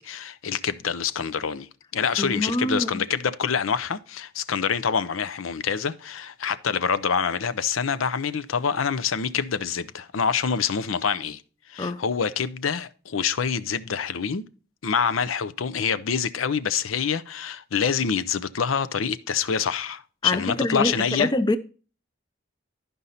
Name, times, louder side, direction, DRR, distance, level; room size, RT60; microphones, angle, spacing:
voice 1, 0.0-1.7 1.9-11.4 11.7-14.4 14.8-21.3, left 6 dB, 90° left, 0.6 m, -26 dB
voice 2, 2.2-3.0 11.8-12.0 20.2-21.6, left 1 dB, 20° left, 0.4 m, -25 dB
11.5 x 5.4 x 4.1 m
head